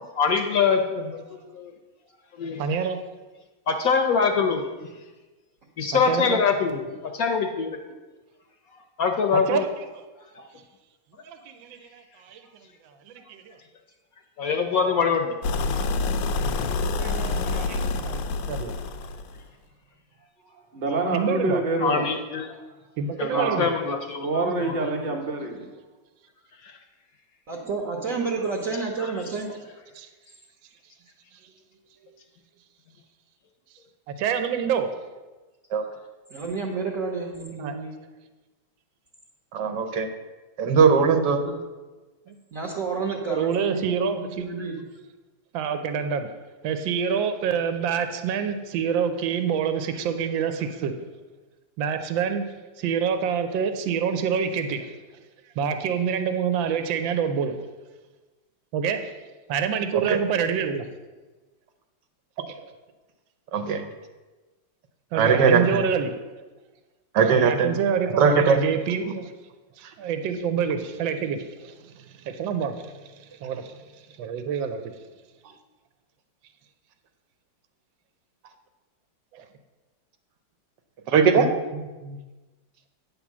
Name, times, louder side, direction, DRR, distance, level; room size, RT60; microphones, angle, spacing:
voice 1, 0.1-1.7 2.4-2.6 3.7-4.6 5.8-7.8 9.0-9.6 10.4-10.5 14.4-15.4 17.5-17.6 21.8-22.5 23.2-24.8 26.6-26.7, left 5 dB, 60° left, 4 dB, 1.0 m, -24 dB
voice 2, 2.6-3.0 5.9-6.4 9.3-9.8 11.2-12.4 13.1-13.6 16.9-18.8 21.1-21.6 23.0-23.7 29.9-30.1 34.1-34.9 37.6-37.8 42.3-42.4 43.0-44.5 45.5-46.3 46.6-51.0 51.8-52.5 52.8-54.9 55.6-57.6 58.7-59.1 59.5-60.9 65.1-66.1 67.2-69.3 69.8-73.8 74.2-74.9 79.3-79.5 81.4-82.2, right 7 dB, 85° right, 8 dB, 1.4 m, -27 dB
sound 1, 15.4-19.4, left 3 dB, 75° left, 1.3 m, -27 dB
voice 3, 20.5-22.1 23.2-23.6 24.2-25.6, right 2 dB, 30° right, 1 dB, 1.0 m, -27 dB
voice 4, 27.5-29.5 36.3-37.9 41.3-41.5 42.5-43.8 44.1-44.7, right 4 dB, 55° right, -2 dB, 1.1 m, -30 dB
voice 5, 39.5-40.1 40.6-41.4 59.9-60.2 63.5-63.9 65.2-65.8 67.2-67.7 68.2-68.6 81.1-81.5, right 5 dB, 70° right, 6 dB, 1.3 m, -19 dB
9.4 x 3.7 x 7.1 m, 1.2 s
omnidirectional pair, 2.1 m